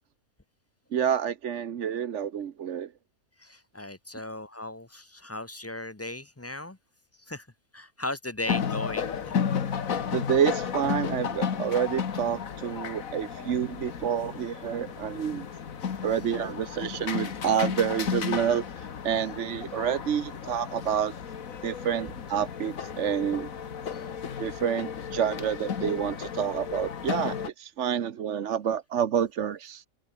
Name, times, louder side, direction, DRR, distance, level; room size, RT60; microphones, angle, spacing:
voice 1, 0.9-2.9 10.1-15.4 16.0-21.1 21.6-23.5 24.4-29.8, right 8 dB, 60° right, 1.2 m, -28 dB
voice 2, 3.4-6.8 7.2-7.5 7.7-9.1 23.9-24.0, left 1 dB, 10° left, 0.9 m, -37 dB
sound 1, 8.5-27.5, left 7 dB, 70° left, 1.8 m, -33 dB
open air
omnidirectional pair, 1.5 m